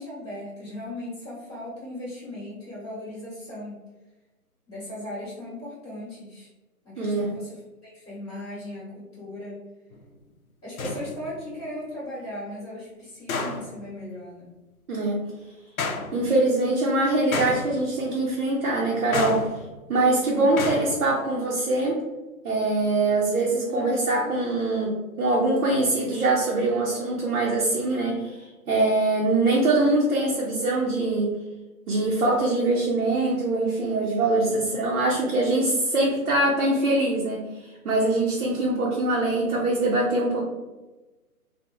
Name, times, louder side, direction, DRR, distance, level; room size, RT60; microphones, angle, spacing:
voice 1, 0.0-3.8 4.7-6.5 6.8-9.6 10.6-14.5 20.3-20.6 23.7-24.3 34.5-34.8, left 1 dB, 10° left, -20 dB, 1.0 m, -38 dB
voice 2, 7.0-7.3 14.9-15.2 16.1-19.4 19.9-22.0 22.4-31.3 31.9-37.4 37.8-40.4, right 2 dB, 65° right, -4 dB, 0.7 m, -23 dB
sound 1, 9.9-10.0 10.8-11.5 13.3-13.9 15.8-16.4 17.3-18.1 19.1-20.0 20.6-21.1, left 3 dB, 65° left, 0.5 m, -31 dB
2.8 x 2.1 x 2.3 m, 1.1 s
figure-of-eight pair, 155°, 45 cm